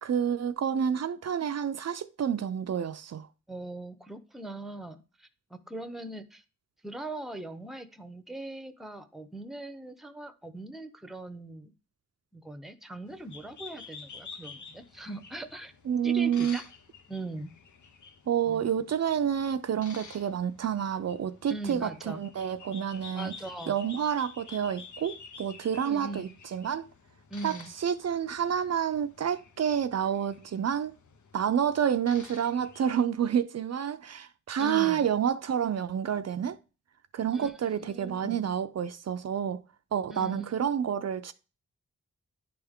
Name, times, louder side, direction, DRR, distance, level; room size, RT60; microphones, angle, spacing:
voice 1, 0.0-3.3 15.9-16.6 18.3-23.3 23.7-26.9 27.4-30.9 31.3-36.6 37.1-39.6 39.9-41.3, right 8 dB, 60° right, 0.5 m, -29 dB
voice 2, 3.5-6.4 6.8-11.7 12.3-15.7 16.0-16.6 17.1-17.5 18.4-18.7 21.5-22.2 23.1-23.8 25.8-26.3 27.3-27.7 34.6-35.1 37.3-38.4 40.1-40.5, right 2 dB, ahead, 0.7 m, -40 dB
sound 1, 13.1-33.0, left 5 dB, 85° left, 0.9 m, -50 dB
10.0 x 3.4 x 3.6 m
wide cardioid pair, 95°, 29 cm